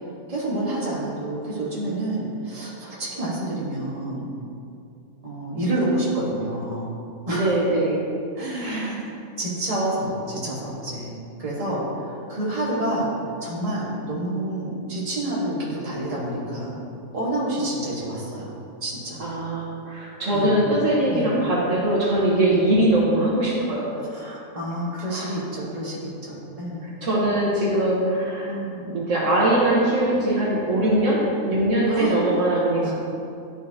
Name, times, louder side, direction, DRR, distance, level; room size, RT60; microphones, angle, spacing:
voice 1, 0.3-4.3 5.2-6.9 7.3-7.6 8.4-9.1 9.4-11.1 11.4-13.1 13.4-16.7 17.1-18.5 18.8-19.2 20.3-20.5 21.1-21.3 22.5-22.7 24.1-26.9 28.0-28.1 28.4-28.9 31.9-32.4 32.8-32.9, right 1 dB, 25° right, -7 dB, 1.5 m, -28 dB
voice 2, 7.3-8.0 8.6-8.9 19.2-23.8 25.1-25.3 27.0-28.5 28.8-32.9, right 1 dB, 65° right, -6 dB, 1.5 m, -21 dB
11.5 x 4.5 x 2.8 m, 2.5 s
omnidirectional pair, 1.4 m